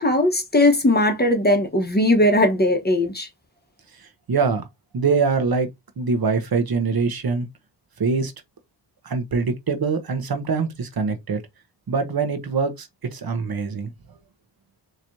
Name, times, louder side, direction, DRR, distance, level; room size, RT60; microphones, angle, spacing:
voice 1, 0.0-3.3, left 1 dB, 25° left, 1.1 m, -19 dB
voice 2, 4.3-4.7 4.9-5.7 6.0-7.5 8.0-8.3 9.0-11.4 11.9-13.9, right 4 dB, 60° right, 1.0 m, -23 dB
4.5 x 3.0 x 2.7 m
cardioid pair, 65°, 42 cm